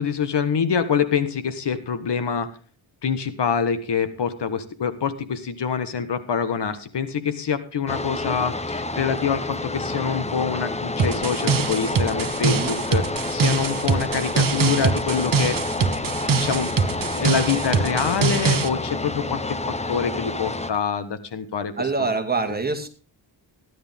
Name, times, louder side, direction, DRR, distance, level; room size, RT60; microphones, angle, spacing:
voice 1, 0.0-2.5 3.0-13.0 13.3-15.6 16.2-19.6 19.9-22.1, left 6 dB, 60° left, 12 dB, 1.5 m, -25 dB
sound 1, 7.9-20.7, left 2 dB, 15° left, 0.8 m, -29 dB
sound 2, 11.0-18.7, right 5 dB, 45° right, 1.1 m, -23 dB
voice 2, 21.8-22.9, right 3 dB, 20° right, 4 dB, 2.3 m, -25 dB
15.0 x 11.0 x 3.6 m, 0.38 s
wide cardioid pair, 115°, 46 cm